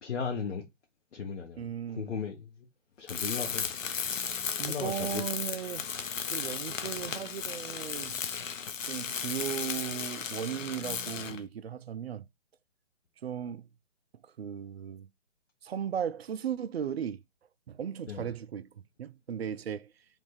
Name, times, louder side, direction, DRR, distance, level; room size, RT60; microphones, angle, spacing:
voice 1, 0.0-0.6 1.1-2.7 3.0-3.7 4.6-5.2 18.0-18.3, left 6 dB, 60° left, 1.2 m, -36 dB
voice 2, 1.6-2.1 4.6-5.9 6.3-8.1 8.9-12.3 13.2-13.7 14.2-15.1 15.6-17.2 17.7-18.7 19.0-19.9, right 9 dB, 55° right, 0.5 m, -36 dB
Tools, 3.1-11.5, left 6 dB, 85° left, 0.8 m, -35 dB
3.3 x 3.2 x 4.3 m
hypercardioid pair, 150°, 38 cm